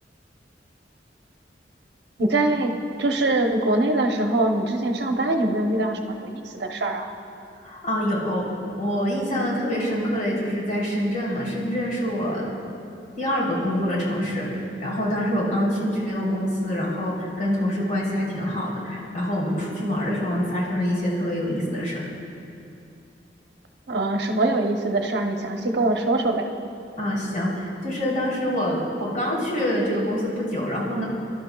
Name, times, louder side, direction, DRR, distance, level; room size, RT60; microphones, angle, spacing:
voice 1, 2.2-7.0 23.9-26.4, right 2 dB, 70° right, 3 dB, 0.9 m, -23 dB
voice 2, 7.6-8.4 8.8-12.5 13.1-22.0 27.0-31.0, equal, 45° left, -6 dB, 3.4 m, -25 dB
28.0 x 12.0 x 2.3 m, 2.6 s
head